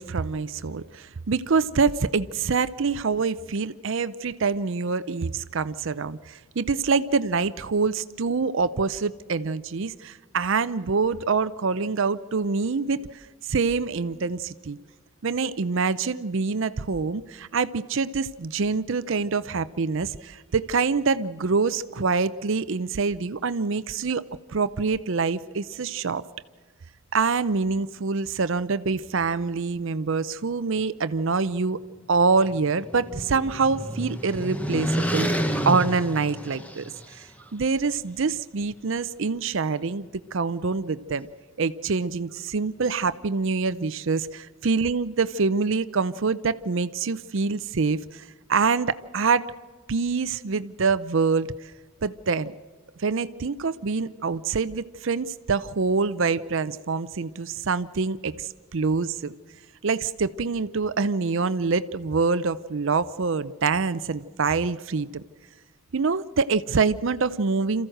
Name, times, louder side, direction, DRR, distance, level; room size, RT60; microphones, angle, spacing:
voice 1, 0.0-14.8 15.2-24.2 24.5-26.2 27.1-31.8 32.1-41.3 41.6-49.4 49.9-51.5 52.0-52.5 53.0-59.3 59.8-65.2 65.9-67.9, right 4 dB, 60° right, 14 dB, 0.6 m, -25 dB
sound 1, 32.5-37.2, equal, 5° left, 1.0 m, -29 dB
27.5 x 15.0 x 7.8 m, 1.5 s
head